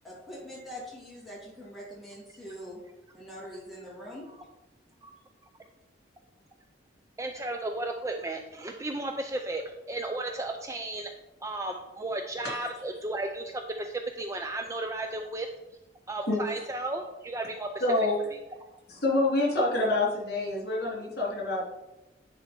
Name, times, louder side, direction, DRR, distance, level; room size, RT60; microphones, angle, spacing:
voice 1, 0.0-2.8 3.1-4.3, equal, ahead, -7 dB, 2.6 m, -43 dB
voice 2, 7.2-11.1 11.4-15.5 16.1-17.8 18.6-18.7, right 2 dB, 15° right, 5 dB, 0.4 m, -34 dB
voice 3, 17.8-18.2 18.9-21.6, left 2 dB, 55° left, -4 dB, 2.7 m, -26 dB
9.9 x 4.3 x 4.3 m, 0.97 s
head